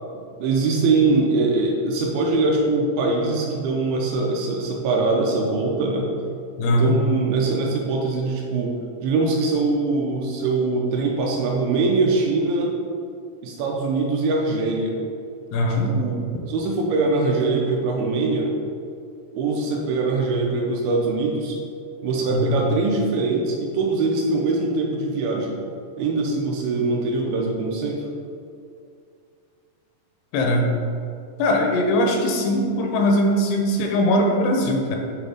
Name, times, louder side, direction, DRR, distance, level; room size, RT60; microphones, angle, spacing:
voice 1, 0.1-6.1 6.7-12.8 13.4-15.0 15.9-18.5 19.3-21.6 22.0-25.6 26.0-28.0, right 3 dB, 80° right, 0 dB, 2.3 m, -22 dB
voice 2, 6.6-6.9 15.5-15.9 22.3-22.5 30.3-30.7 31.4-35.0, left 1 dB, 90° left, 2 dB, 2.8 m, -20 dB
7.9 x 3.4 x 3.8 m, 2.4 s
omnidirectional pair, 4.6 m